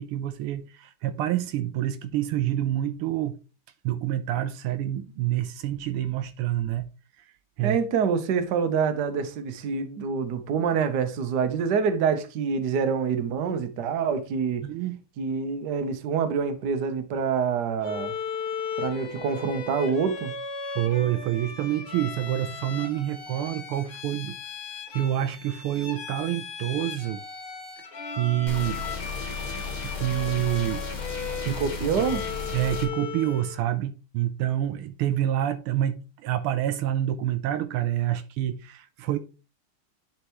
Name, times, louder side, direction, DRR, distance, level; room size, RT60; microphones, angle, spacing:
voice 1, 0.0-3.4 3.8-6.8 7.6-7.8 14.6-15.0 20.6-24.4 24.9-27.2 28.2-28.8 29.8-30.9 31.4-32.1 32.5-39.2, right 12 dB, 85° right, 1.5 m, -27 dB
voice 2, 7.6-14.6 15.2-18.1 18.8-20.3 31.5-32.2, right 6 dB, 60° right, 1.3 m, -26 dB
Bowed string instrument, 17.8-33.6, left 5 dB, 75° left, 3.0 m, -37 dB
sound 1, 28.5-32.9, left 5 dB, 25° left, 1.1 m, -34 dB
10.5 x 4.5 x 3.0 m
omnidirectional pair, 2.4 m